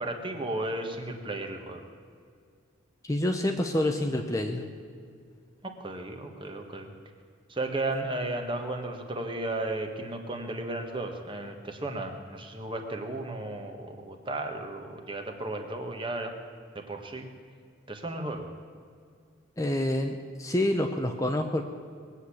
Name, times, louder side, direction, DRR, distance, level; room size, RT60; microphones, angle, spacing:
voice 1, 0.0-1.8 5.6-6.9 7.5-16.4 16.7-17.3 17.9-18.5, right 2 dB, 25° right, 4 dB, 1.5 m, -34 dB
voice 2, 3.0-4.7 19.6-21.6, left 1 dB, 15° left, 4 dB, 0.7 m, -27 dB
20.5 x 8.1 x 8.6 m, 2.2 s
head